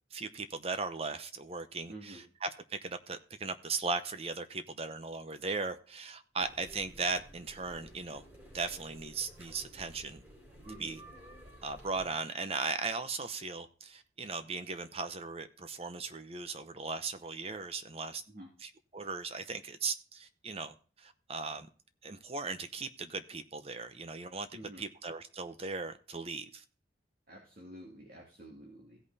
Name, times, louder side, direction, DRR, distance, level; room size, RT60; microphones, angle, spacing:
voice 1, 0.1-8.2 8.5-10.2 10.8-11.0 11.6-18.2 18.6-21.7 22.0-26.6, right 4 dB, 35° right, 0.8 m, -38 dB
voice 2, 1.9-2.2 10.6-10.9 18.3-18.5 24.5-24.8 27.3-29.0, right 1 dB, 55° right, 2.5 m, -49 dB
sound 1, 6.4-12.1, equal, 10° right, 3.8 m, -54 dB
16.5 x 5.4 x 4.1 m
head